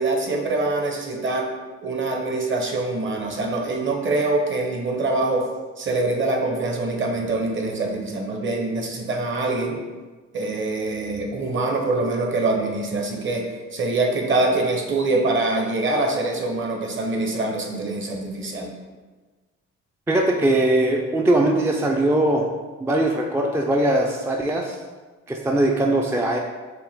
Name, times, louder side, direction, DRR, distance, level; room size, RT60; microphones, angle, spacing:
voice 1, 0.0-1.5 1.8-5.5 5.8-9.8 10.3-18.7, right 2 dB, 40° right, 2 dB, 0.8 m, -24 dB
voice 2, 20.1-22.5 22.8-24.8 25.3-26.4, right 1 dB, 10° right, 1 dB, 0.3 m, -20 dB
5.6 x 2.1 x 3.5 m, 1.3 s
cardioid pair, 90°, 30 cm